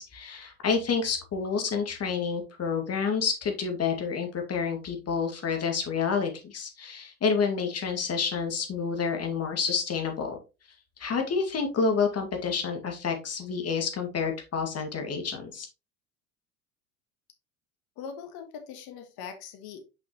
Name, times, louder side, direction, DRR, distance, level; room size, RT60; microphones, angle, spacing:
voice 1, 0.0-10.4 11.0-15.7, left 5 dB, 35° left, 4 dB, 2.1 m, -29 dB
voice 2, 18.0-19.8, left 7 dB, 55° left, 6 dB, 1.6 m, -41 dB
6.2 x 5.6 x 3.0 m, 0.28 s
hypercardioid pair, 80°, 43 cm